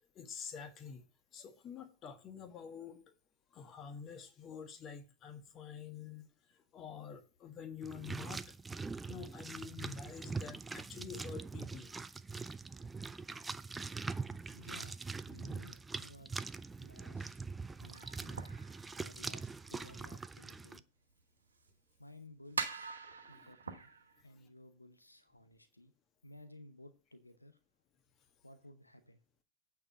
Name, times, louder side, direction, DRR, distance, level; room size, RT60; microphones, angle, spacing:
voice 1, 0.1-3.0 3.5-8.5 9.0-11.9 23.1-23.5 24.3-24.5, left 7 dB, 30° left, 1.4 m, -48 dB
sound 1, 7.8-20.8, right 4 dB, 10° right, 0.4 m, -43 dB
voice 2, 14.5-16.3 16.8-17.4 17.8-18.4 19.0-20.8 22.0-22.9 23.3-23.9 24.2-25.9 26.2-27.6 28.4-29.2, left 1 dB, 85° left, 0.9 m, -56 dB
sound 2, 17.9-19.6 20.0-20.1 20.6-20.7 21.7-21.8 22.5-24.2, right 5 dB, 70° right, 1.1 m, -43 dB
8.7 x 4.7 x 7.4 m
figure-of-eight pair, 90°, 0 cm